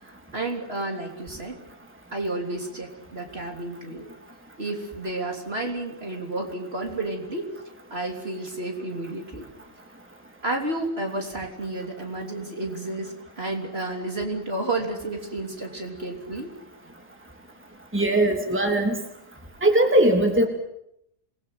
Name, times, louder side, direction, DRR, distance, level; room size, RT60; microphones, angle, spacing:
voice 1, 0.0-1.6 2.1-4.1 4.6-7.5 7.9-9.4 10.4-16.5, right 2 dB, 40° right, 2 dB, 3.6 m, -31 dB
voice 2, 17.9-18.9 19.6-20.5, right 1 dB, 5° right, 3 dB, 3.2 m, -20 dB
27.5 x 21.0 x 7.9 m, 0.78 s
omnidirectional pair, 1.6 m